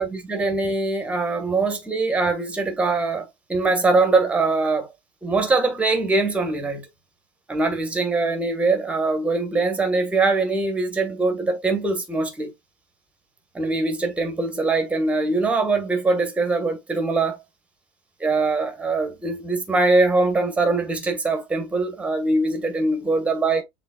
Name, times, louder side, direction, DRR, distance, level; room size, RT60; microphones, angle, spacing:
voice 1, 0.0-4.9 5.2-6.9 7.5-12.5 13.5-17.4 18.2-23.6, right 3 dB, 5° right, 1.2 m, -22 dB
6.7 x 3.5 x 2.2 m
supercardioid pair, 155°, 17 cm